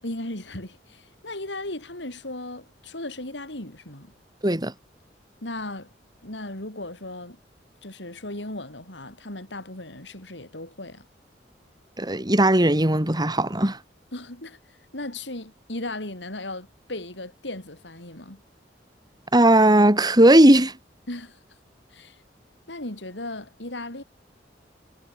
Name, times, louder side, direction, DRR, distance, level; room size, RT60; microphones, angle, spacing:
voice 1, 0.0-4.1 5.4-5.9 6.2-7.4 7.8-11.0 14.1-18.4 21.1-21.4 21.9-22.2 22.7-24.0, left 2 dB, 85° left, 6.2 m, -36 dB
voice 2, 12.0-13.8 19.3-20.7, right 1 dB, 25° right, 3.2 m, -17 dB
head